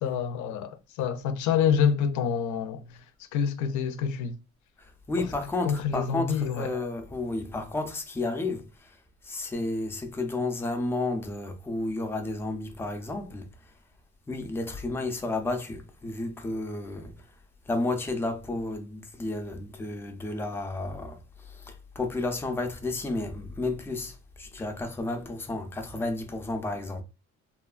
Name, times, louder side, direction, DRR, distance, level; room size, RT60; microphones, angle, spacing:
voice 1, 0.0-3.0 3.3-4.4 5.2-5.3 5.6-6.7, left 7 dB, 85° left, 0.4 m, -27 dB
voice 2, 5.1-8.9 9.2-13.5 14.3-17.1 17.7-21.2 21.5-27.0, left 2 dB, 10° left, 0.3 m, -32 dB
2.9 x 2.2 x 2.3 m
cardioid pair, 140°, 29 cm